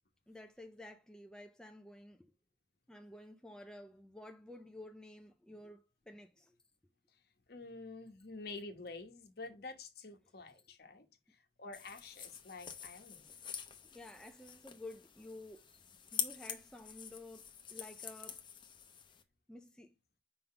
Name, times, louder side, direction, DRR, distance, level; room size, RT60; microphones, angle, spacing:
voice 1, 0.3-2.3 2.9-6.6 13.2-13.4 13.8-15.7 16.1-18.4 19.5-19.9, left 1 dB, 5° left, 0.4 m, -52 dB
voice 2, 7.5-11.1 11.6-13.2, left 3 dB, 55° left, 1.1 m, -48 dB
sound 1, 11.7-19.2, left 8 dB, 25° left, 0.7 m, -45 dB
5.3 x 3.8 x 5.7 m
head